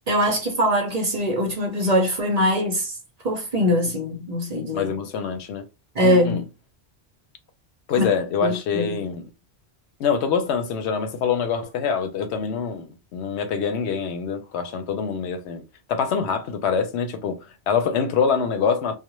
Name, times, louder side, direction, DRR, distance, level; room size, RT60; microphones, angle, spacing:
voice 1, 0.1-3.0 3.2-4.9 5.9-6.4 8.0-8.1 8.4-9.0, equal, 45° right, 0.6 m, -22 dB
voice 2, 4.7-5.6 6.0-6.4 7.9-9.3 10.0-15.6 15.9-19.0, left 6 dB, 85° left, 0.9 m, -25 dB
2.4 x 2.1 x 3.0 m
omnidirectional pair, 1.1 m